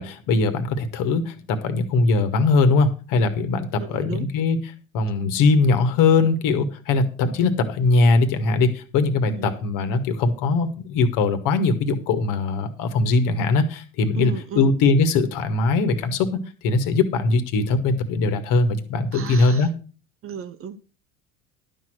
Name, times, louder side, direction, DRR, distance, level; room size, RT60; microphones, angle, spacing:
voice 1, 0.0-4.6 4.9-19.7, left 3 dB, 50° left, 2.0 m, -21 dB
voice 2, 3.8-4.3 9.3-9.5 14.2-14.7 19.1-19.7 20.2-20.9, right 7 dB, 35° right, 1.0 m, -34 dB
12.0 x 6.3 x 6.0 m
hypercardioid pair, 75°, 40 cm